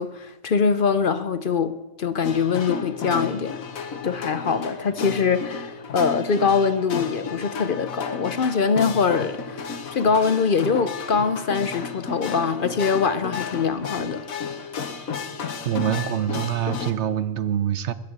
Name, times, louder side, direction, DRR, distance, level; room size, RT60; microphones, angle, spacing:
voice 1, 0.0-3.5 4.0-14.2, left 5 dB, 50° left, 0.7 m, -23 dB
sound 1, 2.2-16.9, left 5 dB, 90° left, 1.6 m, -33 dB
voice 2, 15.6-17.9, right 9 dB, 60° right, 1.0 m, -25 dB
20.5 x 7.5 x 8.1 m
omnidirectional pair, 1.4 m